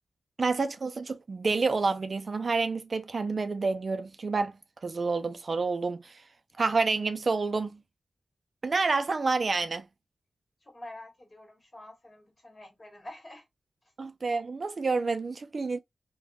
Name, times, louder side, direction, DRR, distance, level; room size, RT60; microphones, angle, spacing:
voice 1, 0.4-4.5 4.8-6.1 6.6-7.8 8.6-9.8 14.0-15.8, right 4 dB, 55° right, 0.3 m, -28 dB
voice 2, 10.6-13.4, left 1 dB, 35° left, 1.4 m, -47 dB
3.4 x 2.1 x 2.2 m
wide cardioid pair, 90°, 0 cm